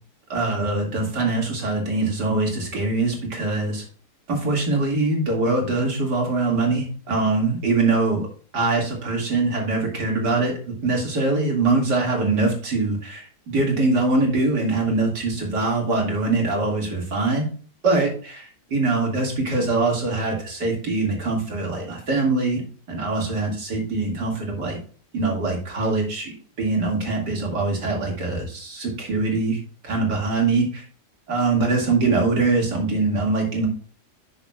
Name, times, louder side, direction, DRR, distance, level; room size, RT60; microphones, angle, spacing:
voice 1, 0.3-3.8 4.3-8.3 8.5-17.5 17.8-22.6 22.9-24.8 25.1-29.6 29.8-30.8 31.3-33.7, right 3 dB, 80° right, -1 dB, 3.0 m, -23 dB
11.0 x 6.9 x 2.4 m, 0.43 s
omnidirectional pair, 1.8 m